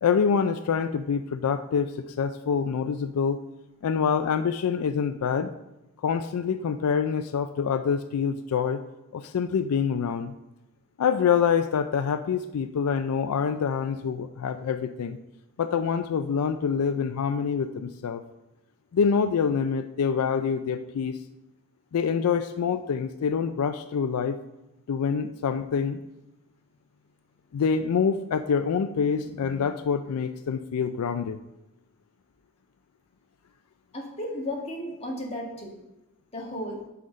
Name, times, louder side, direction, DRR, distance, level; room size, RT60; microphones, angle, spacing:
voice 1, 0.0-1.9 2.2-3.4 3.8-5.5 6.0-8.8 9.1-10.3 11.0-15.2 15.6-18.2 18.9-21.2 21.9-24.4 24.9-26.0 27.5-31.4, left 6 dB, 80° left, 10 dB, 0.4 m, -26 dB
voice 2, 33.9-35.8 36.3-36.8, left 1 dB, 30° left, -2 dB, 1.7 m, -34 dB
6.3 x 5.7 x 5.2 m, 0.92 s
head